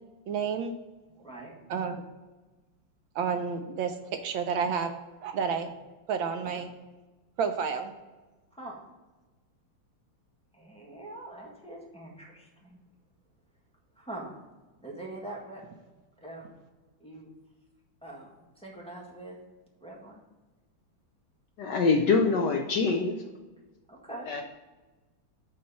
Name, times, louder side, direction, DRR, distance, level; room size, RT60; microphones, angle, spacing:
voice 1, 0.3-0.7 1.7-2.0 3.1-3.9 4.2-4.9 5.2-5.7 6.1-6.7 7.4-7.9, right 6 dB, 75° right, 7 dB, 1.3 m, -30 dB
voice 2, 1.2-1.5 8.5-8.8 10.5-12.8 14.0-14.3 14.8-15.6 16.2-16.5 17.0-17.3 18.0-19.4 19.8-20.2 23.9-24.3, right 1 dB, 5° left, -4 dB, 1.4 m, -43 dB
voice 3, 21.6-23.2 24.3-24.4, left 4 dB, 70° left, 3 dB, 1.1 m, -24 dB
7.6 x 4.1 x 5.4 m, 1.2 s
omnidirectional pair, 2.3 m